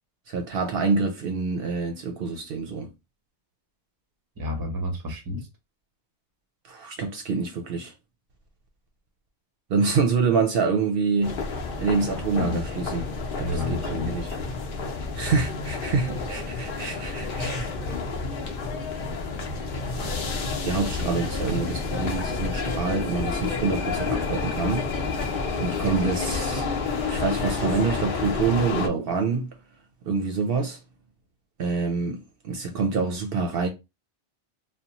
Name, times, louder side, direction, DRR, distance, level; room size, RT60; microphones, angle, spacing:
voice 1, 0.3-2.9 6.7-7.9 9.7-11.4 11.8-13.0 13.4-14.3 15.1-17.8 20.6-24.9 25.5-26.7 27.1-29.6 30.0-30.8 31.6-33.7, right 4 dB, 65° right, 0.7 m, -26 dB
voice 2, 4.4-5.5 12.3-12.6 13.4-14.1 15.3-15.5 21.0-21.1, left 2 dB, 25° right, 0.6 m, -30 dB
sound 1, 11.2-28.9, left 4 dB, 60° left, 0.8 m, -29 dB
2.5 x 2.1 x 2.9 m
omnidirectional pair, 1.1 m